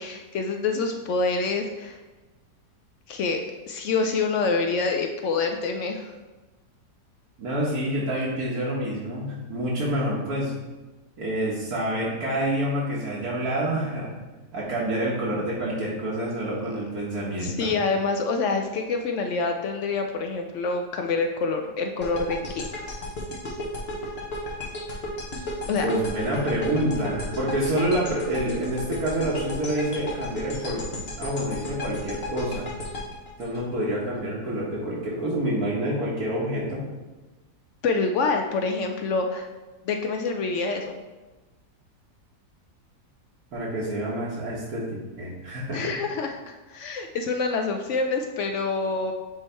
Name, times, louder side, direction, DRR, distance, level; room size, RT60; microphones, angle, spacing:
voice 1, 0.0-2.0 3.1-6.1 16.4-16.5 17.4-22.7 25.7-25.9 37.8-39.5 39.8-41.0 45.7-46.4 46.7-49.1, left 4 dB, 70° left, 4 dB, 0.7 m, -26 dB
voice 2, 7.4-10.5 11.2-14.1 14.5-17.7 25.8-30.9 31.2-32.7 33.4-36.8 43.5-45.9, right 1 dB, 65° right, -6 dB, 1.6 m, -27 dB
sound 1, 22.0-34.2, left 1 dB, 45° left, 1.0 m, -34 dB
8.0 x 3.1 x 4.3 m, 1.2 s
omnidirectional pair, 1.7 m